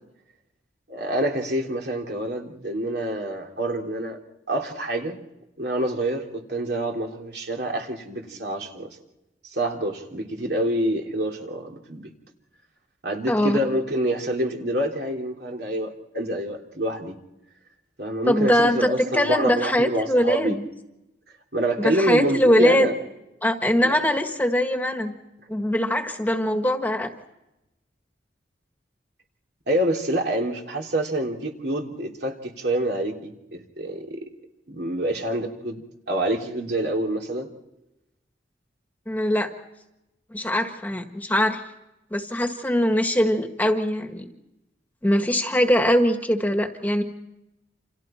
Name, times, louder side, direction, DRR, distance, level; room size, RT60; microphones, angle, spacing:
voice 1, 0.9-4.2 4.5-5.2 5.6-8.9 9.5-12.1 13.0-17.2 18.0-20.6 21.5-23.0 23.8-24.0 29.7-34.2 34.7-37.5, right 1 dB, 65° right, 1 dB, 3.2 m, -27 dB
voice 2, 13.3-13.6 18.2-20.7 21.8-22.9 23.4-25.1 25.5-27.1 39.1-39.5 40.3-41.6 42.1-44.3 45.0-47.0, equal, 10° left, 5 dB, 1.7 m, -22 dB
29.0 x 28.0 x 4.4 m, 0.93 s
head